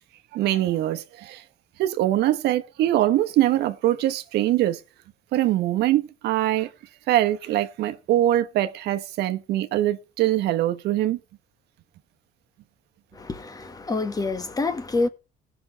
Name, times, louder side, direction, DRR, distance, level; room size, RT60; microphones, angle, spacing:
voice 1, 0.3-1.4 1.8-4.8 5.3-6.7 7.1-11.2, right 13 dB, 80° right, 0.9 m, -23 dB
voice 2, 13.1-15.1, left 3 dB, 20° left, 1.2 m, -27 dB
17.0 x 6.0 x 4.5 m
cardioid pair, 110°, 17 cm